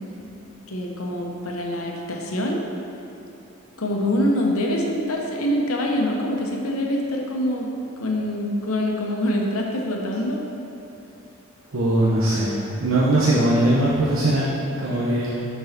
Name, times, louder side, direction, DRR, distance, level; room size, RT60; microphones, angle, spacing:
voice 1, 0.7-2.6 3.8-7.7 8.0-10.4, left 1 dB, 90° left, 0 dB, 1.0 m, -25 dB
voice 2, 11.7-14.5 14.8-15.5, right 1 dB, 75° right, -8 dB, 1.0 m, -20 dB
6.6 x 4.6 x 5.9 m, 2.8 s
head